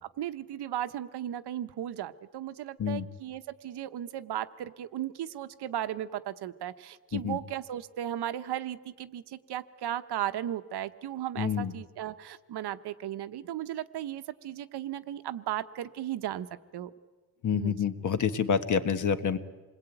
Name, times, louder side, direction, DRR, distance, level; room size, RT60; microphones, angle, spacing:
voice 1, 0.0-16.5 16.7-16.9 17.5-17.8, right 11 dB, 60° right, 12 dB, 1.0 m, -36 dB
voice 2, 11.4-11.7 17.4-19.4, left 7 dB, 40° left, 11 dB, 1.3 m, -28 dB
27.5 x 20.5 x 9.1 m, 1.3 s
cardioid pair, 170°, 44 cm